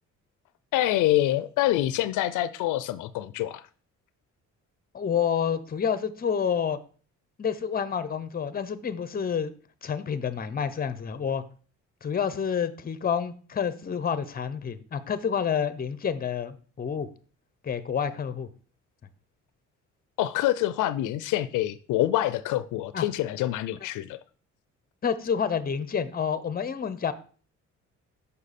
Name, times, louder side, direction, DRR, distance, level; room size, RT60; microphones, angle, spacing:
voice 1, 0.7-3.6 20.2-24.2, left 14 dB, 85° left, 0.5 m, -26 dB
voice 2, 4.9-6.8 7.4-9.5 9.8-11.4 12.0-17.1 17.6-18.5 22.9-23.0 25.0-27.1, left 7 dB, 30° left, 0.7 m, -28 dB
6.5 x 5.4 x 4.2 m
cardioid pair, 90°, 30 cm